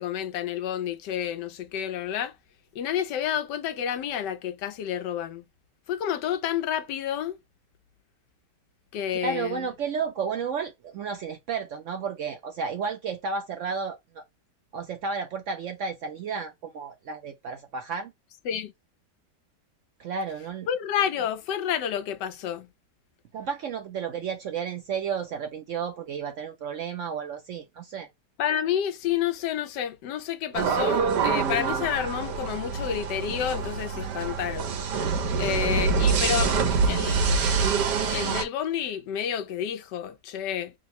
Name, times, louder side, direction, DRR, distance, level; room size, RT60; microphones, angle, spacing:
voice 1, 0.0-2.3 2.7-5.4 5.9-7.4 8.9-9.7 18.4-18.7 20.7-22.7 28.4-34.7 35.4-36.5 36.8-37.2 38.1-40.7, left 9 dB, 85° left, 1.3 m, -29 dB
voice 2, 9.2-14.2 14.7-18.1 20.0-20.7 23.3-28.1, right 5 dB, 70° right, 0.7 m, -32 dB
sound 1, 30.5-38.4, right 5 dB, 85° right, 1.5 m, -25 dB
3.6 x 2.1 x 4.0 m
omnidirectional pair, 1.8 m